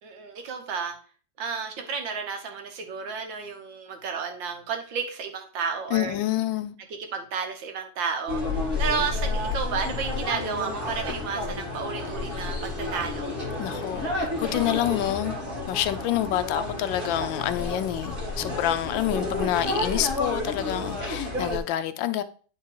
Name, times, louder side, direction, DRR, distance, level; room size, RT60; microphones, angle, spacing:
voice 1, 0.0-1.0 1.4-6.1 7.1-13.4, right 6 dB, 70° right, 1.8 m, -32 dB
voice 2, 5.9-6.8 13.6-15.4 15.7-22.2, left 12 dB, 75° left, 1.3 m, -27 dB
sound 1, 8.3-21.6, left 2 dB, 30° right, 1.8 m, -30 dB
9.0 x 3.7 x 4.7 m
omnidirectional pair, 2.1 m